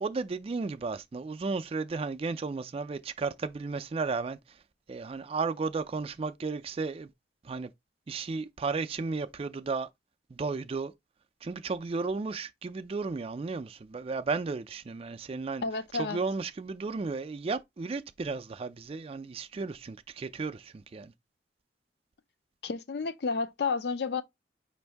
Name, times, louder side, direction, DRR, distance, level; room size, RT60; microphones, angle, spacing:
voice 1, 0.0-4.4 4.9-7.1 7.4-7.7 8.1-9.9 10.3-10.9 11.4-15.6 15.9-21.1, right 4 dB, 35° right, 0.3 m, -34 dB
voice 2, 15.6-16.2 22.6-24.2, left 4 dB, 60° left, 0.5 m, -31 dB
5.4 x 2.6 x 3.3 m
head